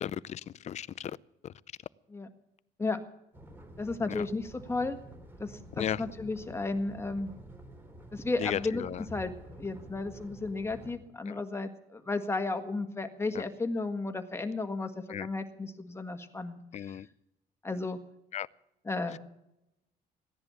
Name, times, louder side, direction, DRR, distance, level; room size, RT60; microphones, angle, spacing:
voice 1, 0.0-1.2 1.4-1.5 4.1-4.3 5.8-6.0 8.4-9.0 11.3-11.4 13.3-13.4 15.1-15.3 16.7-17.1 18.3-18.5, left 10 dB, 40° left, 20 dB, 0.5 m, -35 dB
sound 1, 3.3-11.0, right 1 dB, 10° right, 3.3 m, -49 dB
voice 2, 3.8-5.0 5.4-7.3 8.1-17.0 17.6-18.0 18.8-19.2, left 3 dB, 15° left, 7 dB, 1.7 m, -34 dB
16.0 x 10.5 x 7.1 m, 0.86 s
cardioid pair, 110°, 17 cm